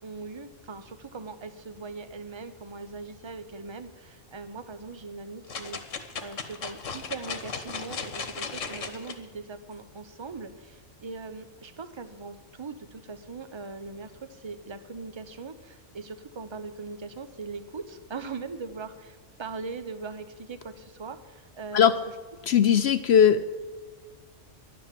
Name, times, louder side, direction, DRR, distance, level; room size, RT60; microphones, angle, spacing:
voice 1, 0.0-21.8, right 4 dB, 25° right, 10 dB, 0.8 m, -40 dB
sound 1, 5.5-9.2 9.7-9.8, left 5 dB, 80° left, 1.6 m, -36 dB
voice 2, 22.5-23.4, left 8 dB, 65° left, 11 dB, 0.8 m, -19 dB
11.5 x 10.5 x 7.6 m, 1.4 s
omnidirectional pair, 1.3 m